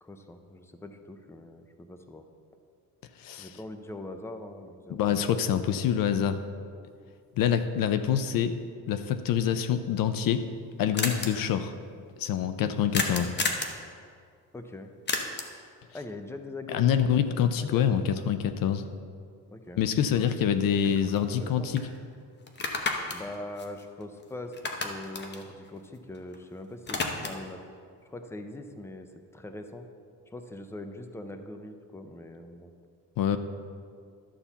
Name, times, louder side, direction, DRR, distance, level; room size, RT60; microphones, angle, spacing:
voice 1, 0.0-2.2 3.4-5.1 14.5-14.9 15.9-17.1 17.6-18.2 19.5-20.3 20.8-21.0 21.3-21.7 23.1-27.6 28.0-29.1 29.3-29.9 30.3-32.7, left 2 dB, 5° left, 7 dB, 0.5 m, -42 dB
voice 2, 3.2-3.5 4.9-6.4 7.4-8.6 8.9-10.4 10.8-11.7 12.2-13.3 16.7-18.8 19.8-21.8 33.2-33.4, left 9 dB, 70° left, 10 dB, 0.6 m, -26 dB
sound 1, 10.0-10.1 10.3-10.4 10.6-10.7 11.0-11.3 12.9-13.8 15.1-15.6 19.8-19.9 20.3-21.5 21.8-21.9 22.5-24.2 24.5-26.4 26.6-27.5, left 3 dB, 30° left, 0.9 m, -32 dB
11.5 x 4.3 x 7.0 m, 2.2 s
cardioid pair, 140°, 35 cm